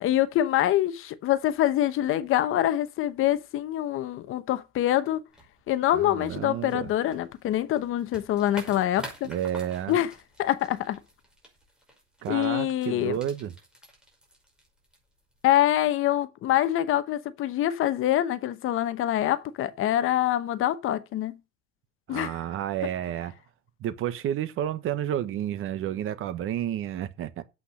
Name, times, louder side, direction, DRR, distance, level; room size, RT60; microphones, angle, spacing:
voice 1, 0.0-5.2 5.7-9.3 9.9-10.1 10.4-11.0 12.3-13.2 15.4-21.4 22.1-22.4, left 12 dB, 45° left, 0.9 m, -25 dB
sound 1, 5.3-15.5, right 1 dB, 5° right, 5.4 m, -49 dB
voice 2, 5.9-6.9 9.3-10.0 12.2-13.5 22.1-23.3 23.8-27.4, right 10 dB, 45° right, 1.2 m, -31 dB
8.6 x 8.1 x 6.3 m
cardioid pair, 145°, 31 cm